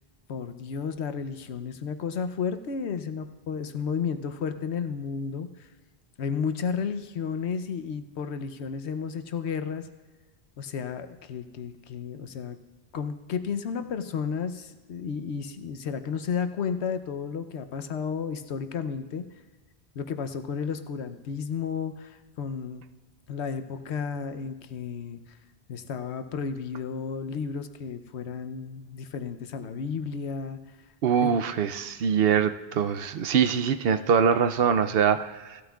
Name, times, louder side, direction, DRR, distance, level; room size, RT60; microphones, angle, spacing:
voice 1, 0.3-5.7 6.2-9.9 10.6-12.6 12.9-19.2 20.0-22.8 23.3-25.2 25.7-30.6 31.2-31.3, left 6 dB, 85° left, 9 dB, 1.0 m, -32 dB
voice 2, 31.0-35.6, right 7 dB, 65° right, 10 dB, 0.8 m, -23 dB
16.5 x 12.5 x 2.4 m, 1.3 s
omnidirectional pair, 1.1 m